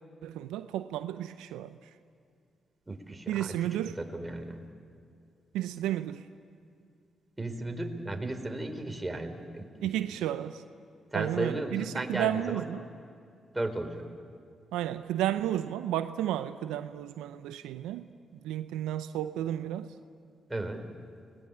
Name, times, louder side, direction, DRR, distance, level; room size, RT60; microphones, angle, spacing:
voice 1, 0.2-1.9 3.3-4.0 5.5-6.3 9.8-10.6 11.1-12.8 14.7-19.9, right 12 dB, 80° right, 0.6 m, -32 dB
voice 2, 2.9-3.5 4.0-4.6 7.4-9.9 11.1-12.7 13.5-14.0 20.5-20.8, right 2 dB, 20° right, 4.4 m, -35 dB
29.5 x 21.0 x 8.7 m
hypercardioid pair, 45°, 0 cm